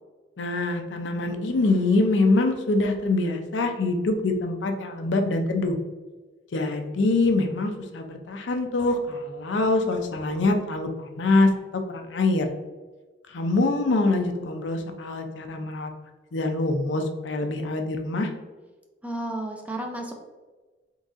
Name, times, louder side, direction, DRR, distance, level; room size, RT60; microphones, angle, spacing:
voice 1, 0.4-5.7 6.5-11.5 11.9-12.5 13.3-15.9 16.3-18.3, left 2 dB, 75° left, 5 dB, 0.5 m, -24 dB
voice 2, 19.0-20.2, right 1 dB, 10° right, 2 dB, 0.4 m, -32 dB
3.9 x 3.6 x 2.5 m, 1.3 s
head